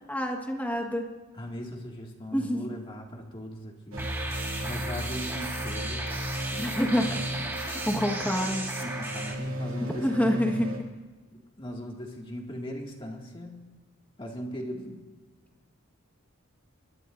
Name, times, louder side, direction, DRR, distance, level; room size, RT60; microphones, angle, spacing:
voice 1, 0.1-1.1 2.3-2.7 6.6-7.2 7.7-8.7 10.0-10.7, equal, 10° left, 2 dB, 1.5 m, -27 dB
voice 2, 1.3-4.1 4.6-6.1 6.5-6.7 7.0-7.4 8.8-10.7 11.3-13.7 14.2-15.0, equal, 25° left, 0 dB, 2.2 m, -39 dB
sound 1, 3.9-10.8, right 1 dB, 85° right, 2.7 m, -37 dB
sound 2, 4.0-9.3, right 1 dB, 10° right, 1.9 m, -34 dB
23.5 x 21.0 x 2.7 m, 1.3 s
head